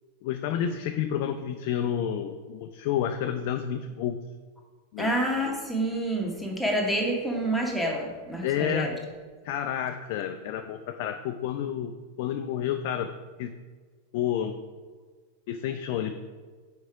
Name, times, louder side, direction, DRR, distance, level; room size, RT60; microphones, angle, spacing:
voice 1, 0.2-4.2 4.9-5.1 8.4-8.9 9.4-11.9 12.2-13.1 13.4-13.5 14.1-14.6 15.5-16.1, left 9 dB, 50° left, 7 dB, 0.4 m, -30 dB
voice 2, 5.0-8.9, right 1 dB, ahead, -1 dB, 1.2 m, -28 dB
6.0 x 4.6 x 4.8 m, 1.4 s
figure-of-eight pair, 90°, 0 cm